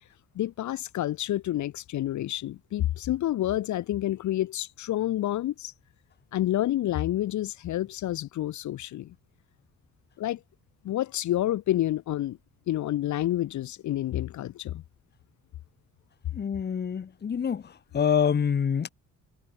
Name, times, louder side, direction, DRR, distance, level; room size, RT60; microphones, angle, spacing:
voice 1, 0.3-5.7 6.3-9.1 10.2-10.4 10.8-12.4 12.7-14.8, left 13 dB, 70° left, 1.0 m, -29 dB
voice 2, 16.3-17.6 17.9-18.9, left 7 dB, 35° left, 1.0 m, -26 dB
cardioid pair, 90°, 30 cm